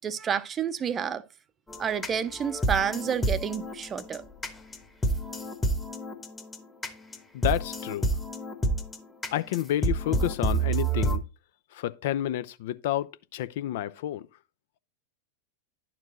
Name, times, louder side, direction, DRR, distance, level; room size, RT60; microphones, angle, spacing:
voice 1, 0.0-1.2 1.8-4.2, right 8 dB, 25° right, 0.6 m, -29 dB
sound 1, 1.7-11.2, right 2 dB, 10° left, 1.1 m, -29 dB
voice 2, 7.3-8.1 9.3-11.2 11.7-14.3, left 13 dB, 55° left, 0.4 m, -30 dB
11.0 x 4.5 x 3.8 m
figure-of-eight pair, 90°, 0 cm